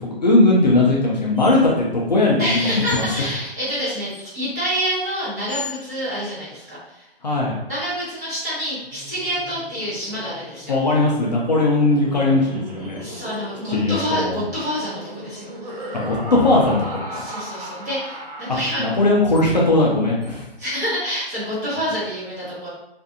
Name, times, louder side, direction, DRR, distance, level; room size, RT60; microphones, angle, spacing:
voice 1, 0.0-3.3 7.2-7.6 10.7-13.0 13.7-14.4 15.9-17.1 18.8-20.4, left 2 dB, 45° left, -3 dB, 0.5 m, -19 dB
sound 1, 1.3-1.6 2.8-3.2 4.0-4.4 5.5-5.9 8.8-9.3 10.9-11.6 12.8-13.0 13.3-13.4 15.3-15.4 15.8-15.9 17.5-17.7 19.3-19.5 20.2-20.3, left 3 dB, 60° left, 0.9 m, -39 dB
voice 2, 2.4-7.1 7.7-10.7 13.0-16.0 17.1-18.8 20.6-22.7, equal, 15° right, -11 dB, 0.8 m, -27 dB
Laughter, 8.8-19.3, right 1 dB, 40° right, 0.4 m, -36 dB
2.6 x 2.4 x 2.5 m, 0.86 s
figure-of-eight pair, 155°, 32 cm